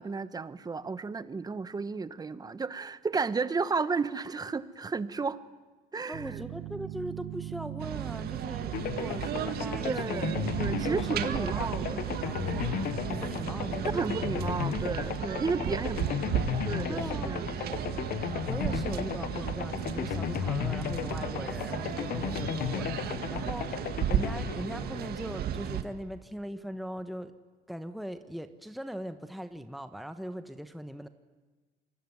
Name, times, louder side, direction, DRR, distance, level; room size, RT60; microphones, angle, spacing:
voice 1, 0.0-5.4 5.9-6.4 9.8-12.1 13.8-16.0 16.6-17.8, right 4 dB, 20° right, 14 dB, 1.2 m, -33 dB
voice 2, 6.1-10.3 10.9-14.3 15.6-15.8 16.1-16.2 16.9-17.4 18.4-27.3 27.7-31.1, equal, ahead, 9 dB, 1.2 m, -40 dB
sound 1, 6.1-14.7, right 15 dB, 85° right, 1.0 m, -39 dB
sound 2, 7.8-25.8, right 10 dB, 65° right, 1.9 m, -35 dB
sound 3, 8.7-25.7, left 11 dB, 60° left, 0.9 m, -35 dB
27.0 x 22.5 x 9.5 m, 1.3 s
cardioid pair, 110°, 17 cm